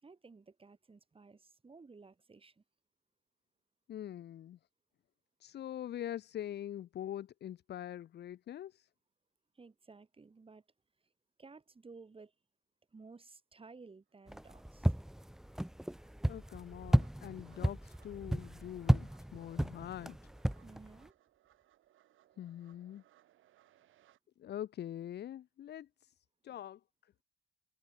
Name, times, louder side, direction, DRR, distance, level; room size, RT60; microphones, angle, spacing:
voice 1, 0.0-2.6 9.5-10.6 11.4-12.3 12.9-14.9 20.6-21.2 26.5-26.6, right 4 dB, 25° right, 4.6 m, -56 dB
voice 2, 3.9-4.6 5.4-8.9 16.3-20.3 22.4-23.0 24.4-26.1 26.4-27.1, left 11 dB, 55° left, 0.7 m, -44 dB
sound 1, 14.1-14.2 14.5-24.2, right 13 dB, 80° right, 4.1 m, -71 dB
sound 2, 14.3-21.0, equal, ahead, 0.5 m, -33 dB
cardioid pair, 90°, 20 cm